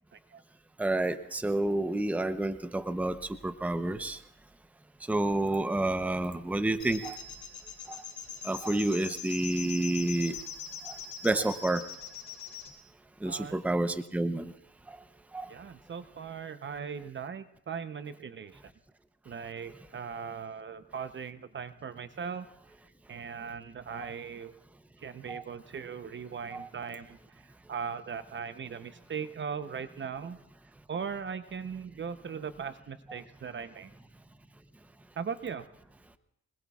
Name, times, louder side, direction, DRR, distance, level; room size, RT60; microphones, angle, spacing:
voice 1, 0.8-4.2 5.1-7.2 7.9-8.0 8.4-10.3 10.8-10.9 11.2-11.8 13.2-14.5 15.3-15.5 25.3-25.4 26.5-26.7, right 2 dB, 5° right, 11 dB, 0.7 m, -29 dB
sound 1, 6.8-12.7, left 7 dB, 75° left, 2.3 m, -42 dB
voice 2, 13.3-13.8 15.5-18.6 19.3-22.5 23.1-24.5 25.0-27.2 27.7-30.4 30.9-33.9 35.2-35.7, right 6 dB, 40° right, 11 dB, 0.8 m, -39 dB
25.5 x 21.0 x 2.4 m, 0.78 s
cardioid pair, 90°, 30 cm